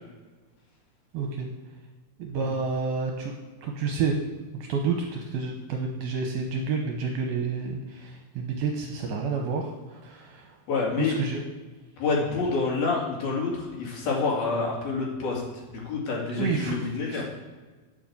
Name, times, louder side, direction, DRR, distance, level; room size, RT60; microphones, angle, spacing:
voice 1, 1.1-1.5 2.2-3.3 3.6-4.2 4.7-10.6 11.0-11.4 16.4-17.2, right 5 dB, 70° right, 2 dB, 2.4 m, -29 dB
voice 2, 10.7-11.2 12.0-15.4 15.7-17.2, left 4 dB, 60° left, -3 dB, 4.1 m, -27 dB
9.4 x 7.8 x 7.1 m, 1.3 s
omnidirectional pair, 5.1 m